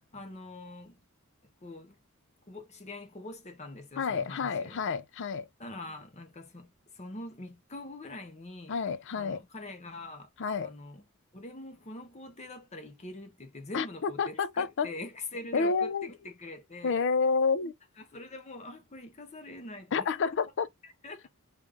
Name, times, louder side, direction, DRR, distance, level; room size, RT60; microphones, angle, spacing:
voice 1, 0.1-1.0 1.6-2.0 2.5-4.8 5.6-8.8 9.2-10.3 10.6-11.0 11.3-17.0 18.1-20.1 21.0-21.3, left 2 dB, 30° left, 0.9 m, -44 dB
voice 2, 4.0-5.5 8.7-9.4 10.4-10.7 13.7-14.9 15.5-16.1 16.8-17.7 19.9-20.7, left 5 dB, 55° left, 0.5 m, -29 dB
5.2 x 2.5 x 3.4 m
head